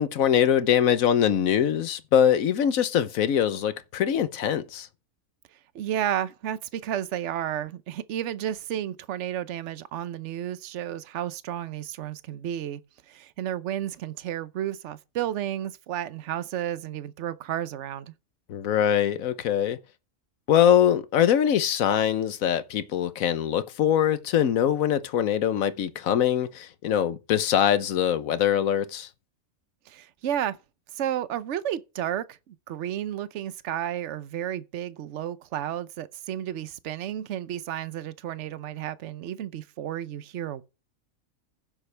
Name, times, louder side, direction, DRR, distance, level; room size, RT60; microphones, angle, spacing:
voice 1, 0.0-4.9 18.5-19.8 20.5-29.1, left 9 dB, 75° left, 1.3 m, -23 dB
voice 2, 5.7-12.8 13.1-18.1 29.9-30.6 30.9-40.6, right 11 dB, 65° right, 1.0 m, -32 dB
16.0 x 7.3 x 3.4 m
omnidirectional pair, 1.4 m